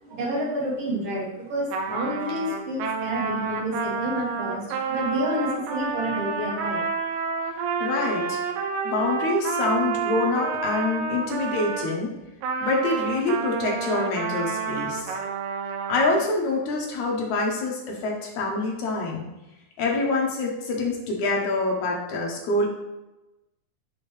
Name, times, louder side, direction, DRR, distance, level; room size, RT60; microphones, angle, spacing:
voice 1, 0.0-6.8, equal, 50° right, -4 dB, 2.5 m, -29 dB
Trumpet, 1.7-11.9 12.4-16.2, right 5 dB, 85° right, 2.3 m, -29 dB
voice 2, 7.8-8.4 8.8-12.1 12.6-15.1 15.9-19.3 19.8-22.7, left 3 dB, 65° left, -1 dB, 2.2 m, -26 dB
6.3 x 5.3 x 3.2 m, 1.0 s
omnidirectional pair, 3.8 m